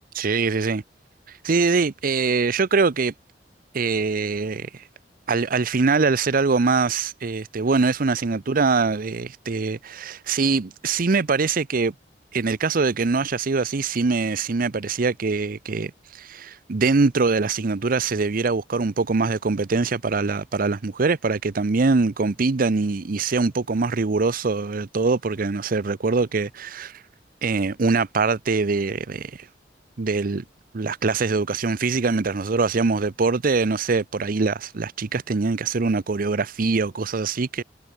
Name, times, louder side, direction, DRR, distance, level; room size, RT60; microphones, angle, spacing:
voice 1, 0.1-0.8 1.3-3.1 3.7-4.9 5.3-11.9 12.3-27.0 27.4-29.5 30.0-30.4 30.7-37.6, right 4 dB, 55° right, 0.7 m, -23 dB
head